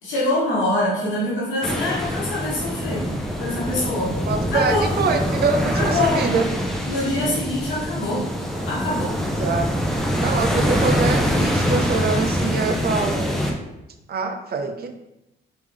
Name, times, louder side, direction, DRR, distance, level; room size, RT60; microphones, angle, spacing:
voice 1, 0.0-3.1 3.4-4.2 4.5-4.9 5.7-6.2 6.9-8.3 8.6-9.2, left 1 dB, 90° left, -7 dB, 1.3 m, -24 dB
sound 1, 1.6-13.5, equal, ahead, 0.6 m, -24 dB
voice 2, 4.3-6.5 9.4-9.7 10.2-13.3 14.1-14.9, right 4 dB, 55° right, 5 dB, 0.6 m, -24 dB
3.5 x 3.5 x 3.5 m, 0.91 s
cardioid pair, 90°, 20 cm